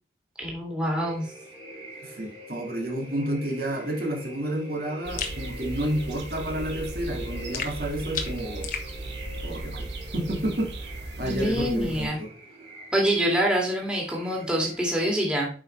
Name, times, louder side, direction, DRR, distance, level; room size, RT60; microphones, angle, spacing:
voice 1, 0.4-1.3 11.2-12.2 12.9-15.5, equal, 5° right, -2 dB, 2.3 m, -26 dB
sound 1, 0.9-14.8, equal, 30° right, 4.2 m, -44 dB
voice 2, 2.0-8.7 9.4-9.9 10.1-10.7 11.2-12.3, right 1 dB, 55° right, 0 dB, 2.2 m, -30 dB
sound 2, 5.0-12.1, right 2 dB, 80° right, 1.5 m, -37 dB
sound 3, 5.2-5.4 7.5-8.9, left 6 dB, 50° left, 1.2 m, -33 dB
8.4 x 5.5 x 3.2 m, 0.38 s
head